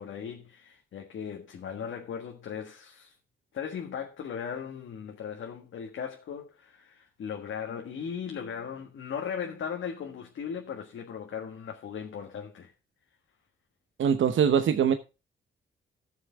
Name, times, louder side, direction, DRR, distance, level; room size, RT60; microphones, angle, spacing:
voice 1, 0.0-3.1 3.5-12.7, left 7 dB, 75° left, 1.6 m, -38 dB
voice 2, 14.0-14.9, right 8 dB, 70° right, 0.9 m, -22 dB
13.5 x 7.0 x 3.6 m
supercardioid pair, 55°, 21 cm